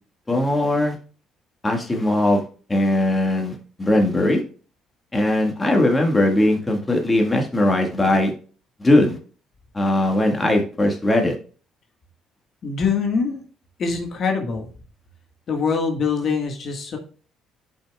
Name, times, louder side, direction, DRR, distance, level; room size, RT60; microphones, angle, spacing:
voice 1, 0.3-1.0 1.6-2.4 2.7-4.4 5.1-8.3 8.8-9.2 9.7-11.3, left 1 dB, 20° left, 2 dB, 1.7 m, -19 dB
voice 2, 12.6-13.4 13.8-14.7 15.5-17.0, left 5 dB, 55° left, 3 dB, 1.6 m, -23 dB
10.0 x 5.6 x 2.3 m, 0.38 s
supercardioid pair, 70°, 0 cm